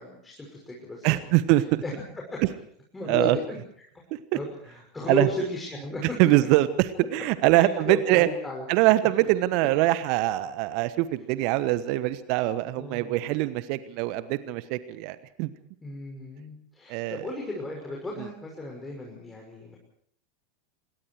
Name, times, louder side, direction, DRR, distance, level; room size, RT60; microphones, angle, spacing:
voice 1, 0.0-1.3 1.8-1.9 2.3-2.4 2.9-3.6 4.3-6.0 7.5-8.6 12.8-13.2 15.8-19.8, left 1 dB, 10° left, -1 dB, 6.0 m, -35 dB
voice 2, 1.0-1.8 3.1-3.4 4.1-4.2 5.1-5.3 6.2-8.3 8.7-15.5 16.9-17.3 18.2-18.3, right 16 dB, 50° right, 14 dB, 1.2 m, -23 dB
27.5 x 22.0 x 4.7 m, 0.66 s
figure-of-eight pair, 85°, 0 cm